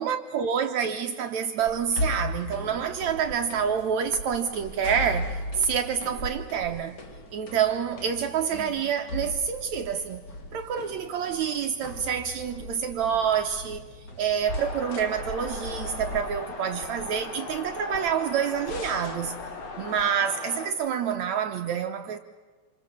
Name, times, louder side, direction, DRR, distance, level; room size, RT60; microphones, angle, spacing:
voice 1, 0.0-7.0 7.3-10.3 10.5-13.9 14.2-19.4 19.8-22.2, right 7 dB, 75° right, 1.7 m, -27 dB
sound 1, 1.6-20.0, left 1 dB, 45° left, 1.4 m, -38 dB
sound 2, 14.5-20.7, left 4 dB, 60° left, 4.3 m, -38 dB
27.5 x 27.0 x 7.1 m
omnidirectional pair, 4.5 m